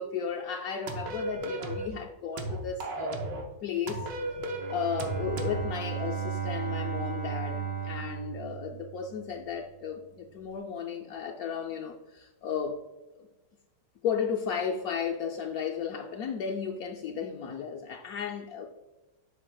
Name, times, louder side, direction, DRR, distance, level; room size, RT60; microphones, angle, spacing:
voice 1, 0.0-3.2 3.6-4.1 4.7-12.8 14.0-18.9, left 7 dB, 70° left, 0.9 m, -34 dB
sound 1, 0.9-1.9 2.4-3.5 3.9-5.6, right 2 dB, 70° right, 1.5 m, -35 dB
Bowed string instrument, 4.4-9.3, right 7 dB, 40° right, 0.8 m, -35 dB
7.4 x 6.5 x 2.3 m
omnidirectional pair, 2.0 m